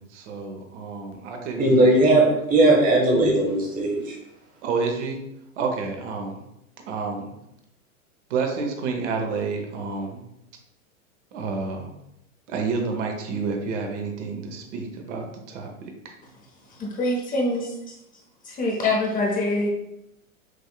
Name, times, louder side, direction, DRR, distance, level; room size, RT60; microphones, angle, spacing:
voice 1, 0.0-1.9 4.6-5.2 5.6-6.4 6.9-7.3 8.3-10.2 11.3-11.9 12.5-16.1, right 4 dB, 55° right, 3 dB, 1.0 m, -29 dB
voice 2, 1.6-4.1, right 2 dB, 20° right, 0 dB, 1.2 m, -18 dB
voice 3, 16.8-17.9 18.4-19.7, left 2 dB, 20° left, -1 dB, 0.8 m, -25 dB
6.4 x 2.7 x 2.2 m, 0.84 s
hypercardioid pair, 105°, 43 cm